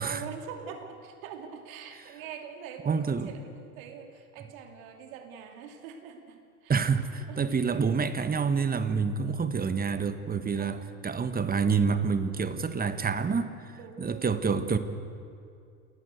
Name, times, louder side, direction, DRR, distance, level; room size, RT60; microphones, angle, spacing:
voice 1, 0.0-6.9 7.3-7.5 10.5-10.9 13.7-14.4, right 7 dB, 65° right, 5 dB, 3.0 m, -44 dB
voice 2, 2.8-3.3 6.7-13.5 14.0-14.8, right 5 dB, 20° right, 11 dB, 1.4 m, -27 dB
28.5 x 14.5 x 8.2 m, 2.5 s
hypercardioid pair, 80°, 43 cm